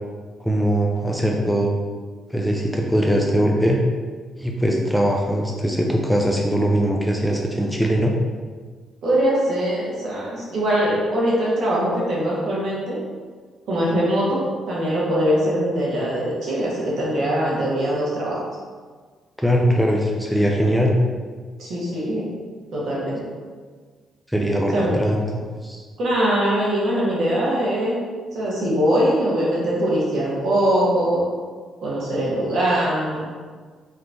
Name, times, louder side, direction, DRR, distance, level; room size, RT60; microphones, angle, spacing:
voice 1, 0.4-1.8 2.3-3.8 4.4-8.1 19.4-21.0 24.3-25.8, equal, ahead, 0 dB, 0.4 m, -21 dB
voice 2, 9.0-13.0 13.7-14.4 14.7-18.4 21.6-22.3 22.7-23.3 24.7-25.0 26.0-28.0 28.3-31.2 31.8-33.2, equal, 70° right, -6 dB, 1.2 m, -22 dB
3.6 x 2.9 x 2.6 m, 1.5 s
cardioid pair, 90°, 0 cm